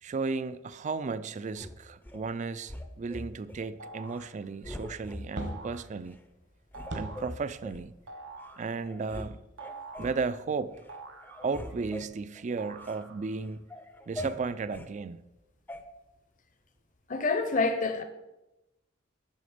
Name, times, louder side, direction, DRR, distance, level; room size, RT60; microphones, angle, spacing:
voice 1, 0.0-6.2 6.9-7.9 8.6-9.4 10.0-10.7 11.4-13.6 14.1-15.2, right 4 dB, 40° right, 0.4 m, -34 dB
sound 1, 1.6-2.2 2.7-3.7 4.1-4.3 4.6-5.6 6.1-6.2 6.7-7.9 8.5-8.6 8.8-9.3 9.6-10.2 10.7-10.9 11.2-13.0 13.4-14.9 15.7-15.8, left 1 dB, 10° left, 0.5 m, -43 dB
sound 2, 3.8-4.3 5.4-5.9 6.7-7.4 8.1-8.7 9.6-10.3 10.9-11.8 12.6-13.4, right 3 dB, 85° right, 0.8 m, -46 dB
sound 3, 5.3-9.3 9.9-10.0 10.8-10.9, right 1 dB, 65° right, 1.3 m, -43 dB
voice 2, 17.1-18.0, left 3 dB, 45° left, 0.8 m, -27 dB
9.3 x 6.0 x 5.0 m
head